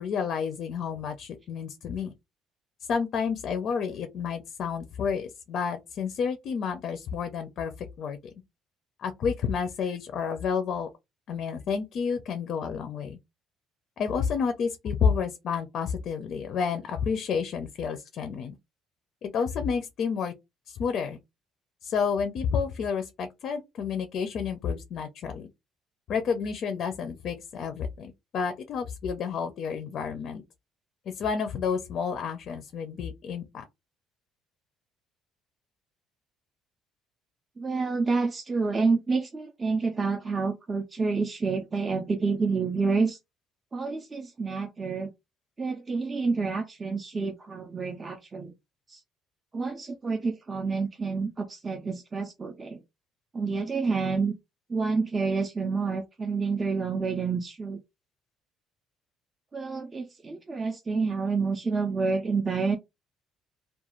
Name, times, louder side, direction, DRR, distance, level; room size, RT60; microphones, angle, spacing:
voice 1, 0.0-2.1 2.9-8.3 9.0-10.9 11.3-13.2 14.0-18.5 19.2-20.3 20.7-21.2 21.8-25.5 26.1-30.4 31.1-33.6, left 6 dB, 50° left, 0.4 m, -30 dB
voice 2, 37.6-43.2 43.7-45.1 45.6-48.5 48.9-49.0 49.5-52.8 53.3-54.3 54.7-57.8 59.5-62.8, right 4 dB, 20° right, 0.3 m, -28 dB
2.4 x 2.2 x 2.9 m
cardioid pair, 150°, 0 cm